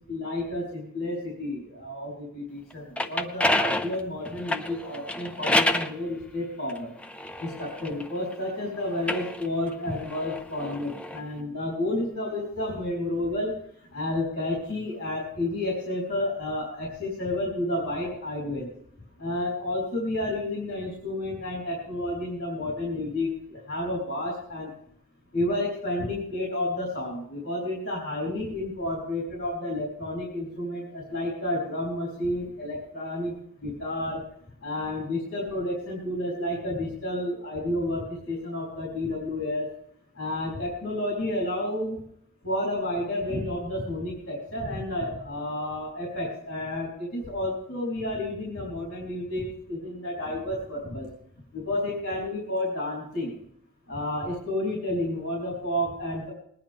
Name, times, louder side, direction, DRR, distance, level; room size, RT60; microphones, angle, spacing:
voice 1, 0.1-6.9 7.4-13.5 13.9-18.7 19.2-24.7 25.3-34.2 34.6-39.6 40.2-42.0 42.4-51.1 51.5-53.3 53.9-56.3, left 1 dB, 50° left, -3 dB, 4.0 m, -31 dB
sound 1, 2.7-5.9 6.7-8.4 8.9-11.2, left 1 dB, 5° left, 0.6 m, -28 dB
21.0 x 10.5 x 3.6 m, 0.69 s
head